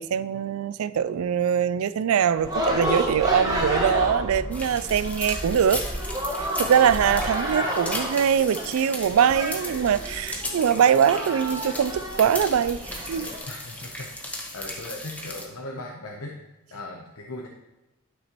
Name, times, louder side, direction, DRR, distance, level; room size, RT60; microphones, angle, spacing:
voice 1, 0.0-5.8 6.6-13.3, right 8 dB, 75° right, 0.3 m, -22 dB
sound 1, 2.4-13.4, equal, 15° right, 1.3 m, -30 dB
sound 2, 4.5-15.5, left 1 dB, 5° left, 1.0 m, -36 dB
voice 2, 7.0-7.7 13.5-16.4 16.7-17.5, left 2 dB, 80° left, 0.8 m, -39 dB
11.5 x 6.1 x 3.0 m
head